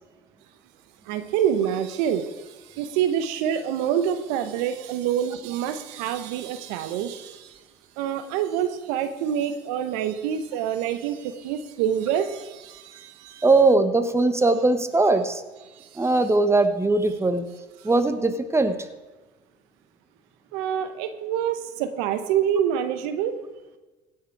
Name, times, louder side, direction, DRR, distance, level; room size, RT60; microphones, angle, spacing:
voice 1, 1.1-7.6 8.0-13.4 15.8-16.1 20.5-23.3, right 9 dB, 80° right, 10 dB, 0.9 m, -27 dB
voice 2, 13.4-15.4 15.9-17.5 17.8-18.7, right 2 dB, 15° right, 10 dB, 1.1 m, -20 dB
17.0 x 6.6 x 4.6 m, 1.2 s
supercardioid pair, 80°, 20 cm